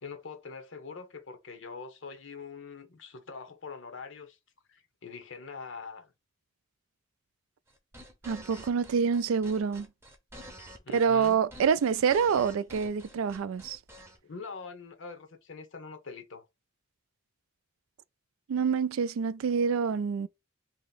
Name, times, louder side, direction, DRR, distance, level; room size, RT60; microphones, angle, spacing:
voice 1, 0.0-4.4 4.7-6.1 10.8-11.4 14.2-16.5, left 4 dB, 60° left, 0.7 m, -43 dB
sound 1, 7.7-14.2, equal, 10° right, 0.7 m, -49 dB
voice 2, 8.2-9.9 10.9-13.8 18.5-20.3, right 6 dB, 80° right, 0.3 m, -27 dB
3.0 x 2.8 x 3.9 m
head